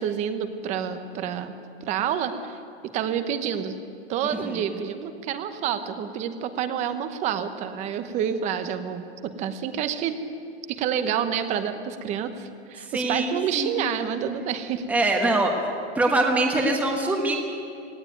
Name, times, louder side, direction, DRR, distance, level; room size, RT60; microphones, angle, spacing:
voice 1, 0.0-1.5 1.8-2.6 2.9-3.8 4.1-10.2 10.7-14.8, right 8 dB, 20° right, 9 dB, 1.0 m, -28 dB
voice 2, 12.8-13.8 14.9-15.5 15.9-17.4, right 2 dB, 5° right, 2 dB, 1.3 m, -23 dB
19.0 x 16.5 x 9.1 m, 2.4 s
hypercardioid pair, 160°, 34 cm